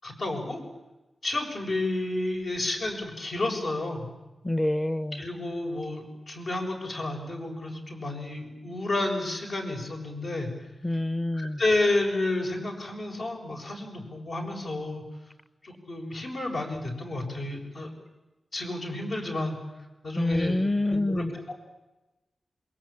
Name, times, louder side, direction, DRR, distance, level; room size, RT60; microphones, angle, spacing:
voice 1, 0.0-0.6 1.2-4.1 5.1-10.5 11.3-15.0 15.6-17.9 18.5-19.6 20.0-20.6 20.9-21.5, left 2 dB, 70° left, 1 dB, 7.2 m, -31 dB
voice 2, 4.4-5.2 10.8-11.6 20.2-21.3, left 1 dB, 20° left, 15 dB, 0.9 m, -27 dB
27.5 x 22.5 x 8.9 m, 1.1 s
wide cardioid pair, 90°, 0 cm